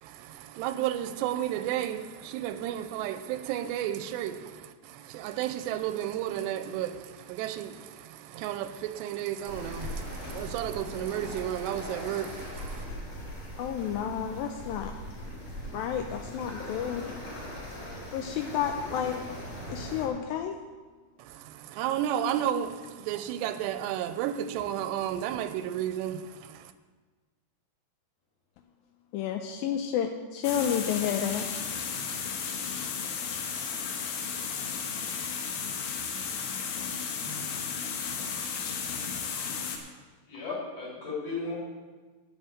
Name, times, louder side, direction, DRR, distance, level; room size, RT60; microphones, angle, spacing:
voice 1, 0.0-12.9 21.2-26.7, right 11 dB, 90° right, 2.8 m, -33 dB
sound 1, 9.5-20.1, equal, 30° left, 3.9 m, -40 dB
voice 2, 13.6-14.9 15.7-17.2 18.1-19.4 19.7-20.6 29.1-31.5, left 9 dB, 90° left, 2.0 m, -31 dB
sound 2, 30.4-39.8, left 6 dB, 70° left, 2.7 m, -34 dB
voice 3, 40.3-41.6, left 3 dB, 50° left, 5.0 m, -35 dB
10.5 x 6.2 x 8.9 m
omnidirectional pair, 4.8 m